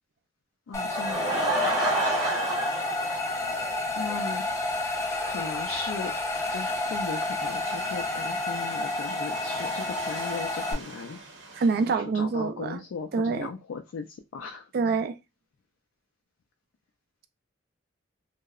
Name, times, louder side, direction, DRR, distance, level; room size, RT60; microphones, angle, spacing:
voice 1, 0.7-1.4 4.0-4.4 5.2-6.1 6.5-11.2 11.8-14.7, left 5 dB, 80° left, 0.3 m, -37 dB
sound 1, 0.7-10.7, left 2 dB, 15° left, 0.4 m, -30 dB
Laughter / Crowd, 0.7-4.2 4.5-4.6 5.1-5.2 5.4-5.5, right 1 dB, 20° right, 0.8 m, -29 dB
sound 2, 6.3-11.9, right 3 dB, 65° right, 0.7 m, -43 dB
voice 2, 11.6-12.8 13.1-13.5 14.7-15.1, right 4 dB, 50° right, 0.3 m, -26 dB
2.7 x 2.0 x 2.3 m
head